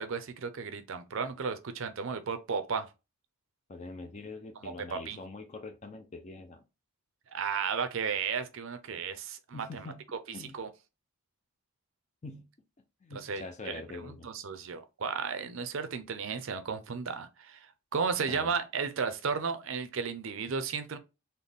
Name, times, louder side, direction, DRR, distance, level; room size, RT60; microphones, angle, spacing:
voice 1, 0.0-2.9 4.6-5.2 7.3-10.7 13.1-21.0, right 5 dB, 60° right, 0.5 m, -34 dB
voice 2, 3.7-6.6 9.5-10.0 10.3-10.5 12.2-12.5 13.0-14.3 18.3-18.5, left 3 dB, 30° left, 0.4 m, -44 dB
4.0 x 2.1 x 3.4 m
head